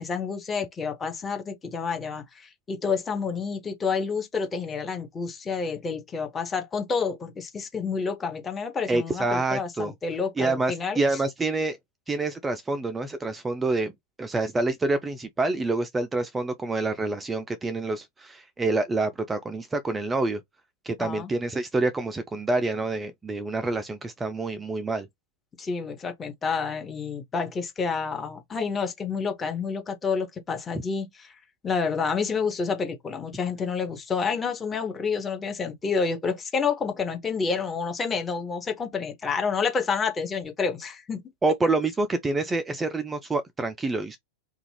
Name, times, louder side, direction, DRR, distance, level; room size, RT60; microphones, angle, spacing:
voice 1, 0.0-11.0 21.0-21.3 25.6-31.3 31.6-41.2, left 5 dB, 20° left, 0.8 m, -29 dB
voice 2, 8.9-9.9 10.4-11.8 12.1-13.9 14.2-20.4 20.8-25.1 41.4-44.2, right 3 dB, 15° right, 0.3 m, -27 dB
2.4 x 2.2 x 3.1 m
figure-of-eight pair, 90°, 0 cm